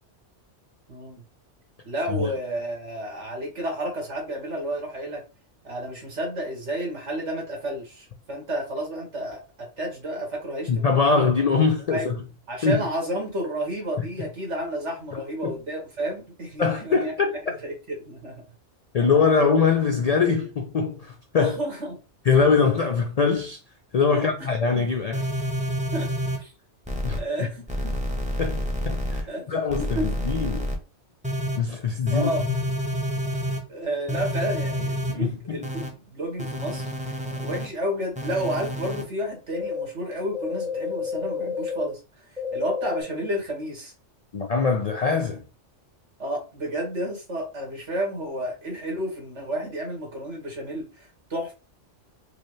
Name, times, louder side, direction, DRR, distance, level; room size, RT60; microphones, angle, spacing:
voice 1, 0.9-1.2 1.9-5.2 5.6-11.2 11.9-12.1 12.5-17.1 17.6-18.4 21.4-22.0 24.1-24.9 25.9-26.1 26.4-26.5 27.1-28.0 29.3-30.1 32.1-32.4 33.7-42.0 42.3-43.9 46.2-51.5, right 1 dB, 70° right, 1.8 m, -31 dB
voice 2, 10.7-12.2 12.6-12.8 14.0-14.1 15.4-15.6 16.6-17.4 18.9-21.5 22.3-23.6 23.9-25.2 27.0-27.5 28.4-30.7 31.6-32.3 35.1-35.7 44.3-45.4, left 5 dB, 70° left, 0.3 m, -23 dB
sound 1, 25.1-26.4 26.9-27.2 27.7-29.2 29.7-30.8 31.2-31.6 32.1-33.6 34.1-35.1 35.6-35.9 36.4-37.7 38.2-39.0 39.5-39.8 40.3-41.9 42.4-43.0, left 1 dB, 10° right, 0.6 m, -29 dB
4.8 x 2.1 x 3.1 m
omnidirectional pair, 1.3 m